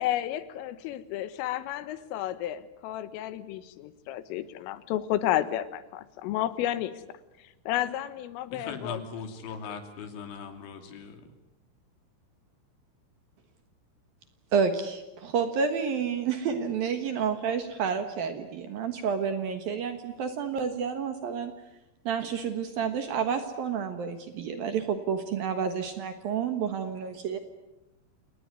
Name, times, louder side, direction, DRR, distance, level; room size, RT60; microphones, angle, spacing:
voice 1, 0.0-6.9 7.7-9.0, left 13 dB, 90° left, 13 dB, 3.9 m, -31 dB
voice 2, 8.5-11.3, left 5 dB, 70° left, 6 dB, 5.1 m, -39 dB
voice 3, 14.5-21.5 22.1-27.4, right 6 dB, 65° right, 8 dB, 2.6 m, -30 dB
29.5 x 19.5 x 9.6 m, 0.98 s
omnidirectional pair, 5.7 m